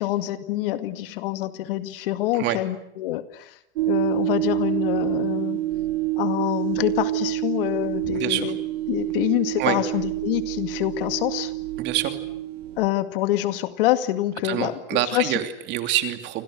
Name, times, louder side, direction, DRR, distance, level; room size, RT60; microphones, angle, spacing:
voice 1, 0.0-3.6 3.9-5.6 6.2-8.6 8.9-11.5 12.8-15.3, left 14 dB, 50° left, 10 dB, 2.2 m, -26 dB
sound 1, 3.8-12.9, right 16 dB, 60° right, 2.2 m, -27 dB
voice 2, 8.1-8.5 9.6-9.8 11.8-12.2 14.4-16.4, right 13 dB, 30° right, 8 dB, 2.8 m, -26 dB
29.0 x 26.5 x 6.5 m, 0.78 s
supercardioid pair, 155°, 35 cm